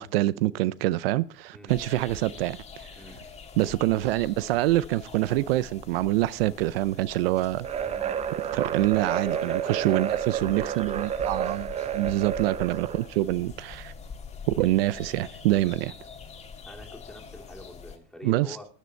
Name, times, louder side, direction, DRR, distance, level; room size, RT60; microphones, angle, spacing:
voice 1, 0.0-2.6 3.6-7.7 8.5-11.7 11.9-13.9 14.5-15.9 18.2-18.6, right 16 dB, 85° right, 0.5 m, -25 dB
sound 1, 1.7-18.0, left 5 dB, 20° left, 1.5 m, -44 dB
sound 2, 7.6-13.1, right 9 dB, 20° right, 0.5 m, -30 dB
voice 2, 7.7-8.1 8.7-10.0 11.2-11.4 15.6-15.8 16.7-18.7, left 1 dB, ahead, 2.1 m, -44 dB
13.0 x 8.2 x 4.4 m
supercardioid pair, 125°, 29 cm